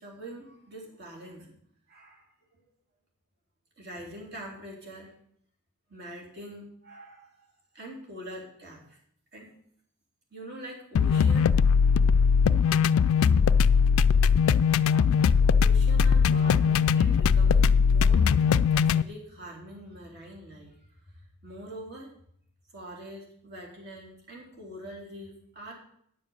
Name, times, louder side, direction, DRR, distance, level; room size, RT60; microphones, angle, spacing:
voice 1, 0.0-1.5 1.9-2.2 2.5-2.6 3.8-5.1 5.9-7.5 7.7-9.0 9.3-9.5 10.3-11.4 15.6-18.3 18.7-20.7 21.4-22.1 22.7-25.7, right 1 dB, 50° right, -1 dB, 3.4 m, -44 dB
sound 1, 11.0-19.0, left 6 dB, 65° left, 0.3 m, -20 dB
10.0 x 7.1 x 7.0 m, 0.68 s
head